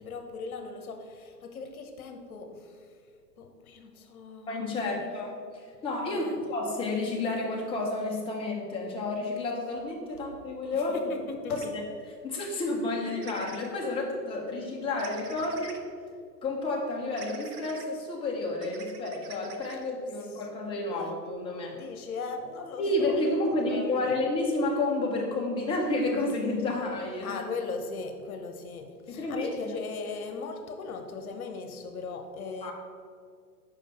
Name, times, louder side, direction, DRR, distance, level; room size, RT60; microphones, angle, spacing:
voice 1, 0.0-2.8 3.4-5.1 6.1-6.4 10.7-11.0 11.3-11.7 20.9-21.1 21.7-23.2 23.6-24.2 27.2-32.7, left 4 dB, 60° left, 5 dB, 1.1 m, -39 dB
voice 2, 4.5-11.0 11.5-11.8 12.2-15.8 16.4-21.8 22.8-27.4 29.1-29.8 32.6-32.7, left 2 dB, 10° left, -1 dB, 0.8 m, -30 dB
sound 1, 11.6-11.7 13.2-13.7 15.0-15.8 17.2-17.9 18.6-19.8, right 5 dB, 65° right, 0.9 m, -46 dB
5.4 x 5.0 x 5.4 m, 2.2 s
figure-of-eight pair, 110°, 50 cm